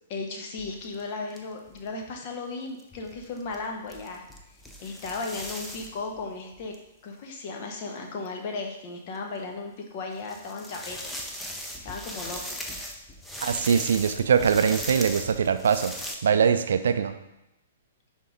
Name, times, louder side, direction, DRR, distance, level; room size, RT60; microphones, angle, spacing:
voice 1, 0.1-4.2 4.8-6.7 7.0-11.1 11.8-12.5, left 3 dB, 40° left, 2 dB, 1.3 m, -35 dB
sound 1, 0.6-1.0 1.3-1.4 1.7-1.9 2.8-6.8 8.3-8.4 9.2-9.3 10.1-16.2, equal, 5° left, 0.8 m, -39 dB
voice 2, 13.4-15.9 16.2-17.2, right 7 dB, 60° right, 10 dB, 0.5 m, -22 dB
10.5 x 3.7 x 3.9 m, 0.91 s
figure-of-eight pair, 110°, 0 cm